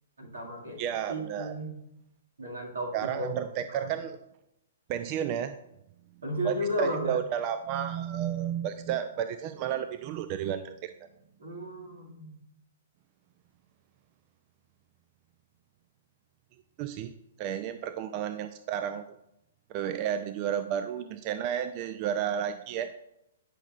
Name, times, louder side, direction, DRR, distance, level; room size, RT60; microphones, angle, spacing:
voice 1, 0.2-0.8 1.1-1.7 2.4-3.3 3.7-3.9 6.2-7.2 11.4-12.4, equal, 85° right, 0 dB, 2.0 m, -34 dB
voice 2, 0.8-1.5 2.9-4.2 4.9-5.5 6.4-10.9 16.8-17.1 17.4-19.0 19.7-22.9, right 9 dB, 35° right, 10 dB, 0.4 m, -32 dB
9.9 x 6.1 x 2.5 m, 0.83 s
hypercardioid pair, 130°, 0 cm